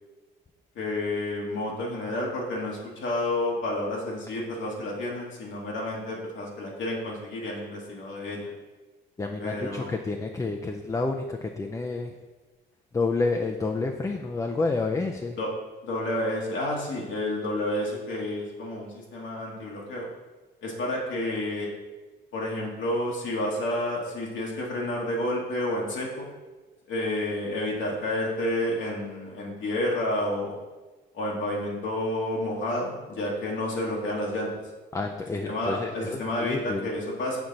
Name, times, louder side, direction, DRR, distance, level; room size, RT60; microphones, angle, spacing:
voice 1, 0.7-8.5 9.4-9.9 15.4-15.5 15.8-20.1 20.6-21.7 22.3-26.3 26.9-30.6 31.1-34.6 35.5-37.4, left 1 dB, 70° left, -3 dB, 1.3 m, -30 dB
voice 2, 9.2-12.1 12.9-15.4 34.9-36.9, left 3 dB, 15° left, 3 dB, 0.4 m, -29 dB
6.2 x 4.1 x 3.8 m, 1.2 s
cardioid pair, 90°, 20 cm